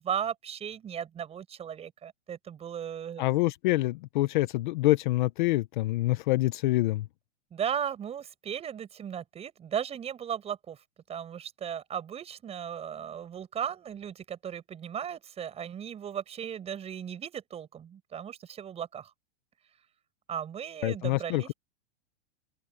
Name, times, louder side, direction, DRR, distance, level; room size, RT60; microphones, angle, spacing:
voice 1, 0.0-3.3 7.5-10.8 11.1-19.1 20.3-21.5, right 8 dB, 15° right, 5.7 m, -36 dB
voice 2, 3.2-7.1 20.8-21.5, left 18 dB, 40° left, 0.7 m, -26 dB
open air
supercardioid pair, 165°, 36 cm